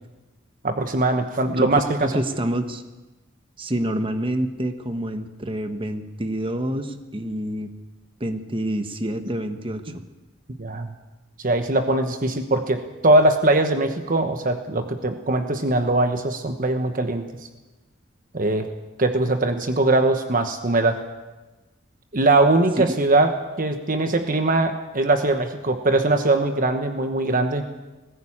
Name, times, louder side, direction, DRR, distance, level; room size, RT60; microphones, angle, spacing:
voice 1, 0.6-2.1 10.6-10.9 11.4-17.2 18.3-18.7 19.0-21.0 22.1-23.3 23.6-27.7, right 2 dB, 45° right, 7 dB, 1.2 m, -21 dB
voice 2, 1.6-2.8 3.6-7.7 8.2-10.0 22.8-23.0, right 1 dB, 30° right, 7 dB, 1.4 m, -27 dB
19.5 x 15.5 x 8.8 m, 1.2 s
head